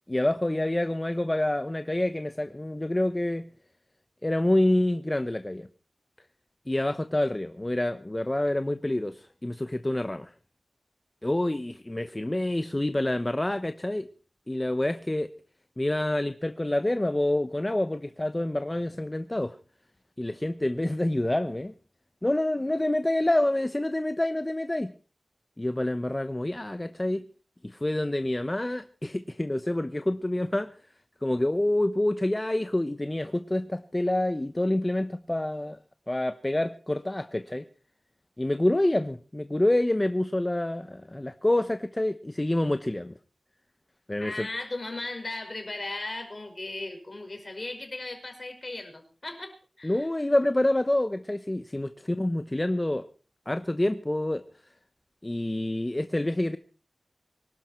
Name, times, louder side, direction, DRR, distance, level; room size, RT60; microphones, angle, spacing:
voice 1, 0.1-3.5 4.2-5.7 6.7-10.3 11.2-14.1 14.5-15.3 15.8-19.6 20.2-21.7 22.2-24.9 25.6-27.2 27.6-30.7 31.2-35.8 36.1-37.6 38.4-43.1 44.1-44.5 49.8-53.1 53.5-54.4 55.2-56.6, left 1 dB, 20° left, 0.9 m, -27 dB
voice 2, 44.2-50.1, left 2 dB, 40° left, 5.5 m, -37 dB
24.0 x 12.0 x 4.4 m
wide cardioid pair, 80°, 0 cm